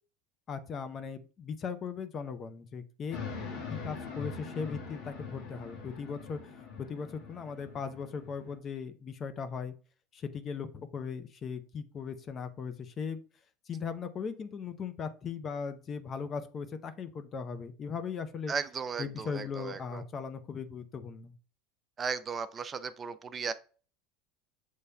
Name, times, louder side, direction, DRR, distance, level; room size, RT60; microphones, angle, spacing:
voice 1, 0.5-3.2 3.7-9.7 10.1-13.2 13.7-18.5 19.0-21.3, left 6 dB, 35° left, 0.6 m, -38 dB
sound 1, 3.1-8.5, left 5 dB, 60° left, 1.4 m, -43 dB
voice 2, 18.5-20.0 22.0-23.5, right 5 dB, 30° right, 0.4 m, -36 dB
6.8 x 3.2 x 2.2 m
hypercardioid pair, 95°, 0 cm